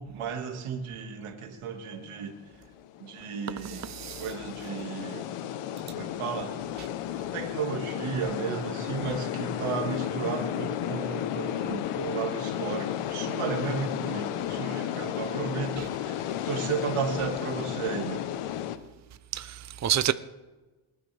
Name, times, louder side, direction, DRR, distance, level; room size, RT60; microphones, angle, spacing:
voice 1, 0.0-2.3 3.0-3.9 4.2-5.3 5.9-6.5 7.3-18.2, right 6 dB, 80° right, 2.1 m, -34 dB
sound 1, 2.5-18.8, left 11 dB, 90° left, 1.0 m, -33 dB
voice 2, 3.9-4.2 19.3-20.1, right 11 dB, 35° right, 0.7 m, -28 dB
28.0 x 9.8 x 3.5 m
cardioid pair, 70°, 50 cm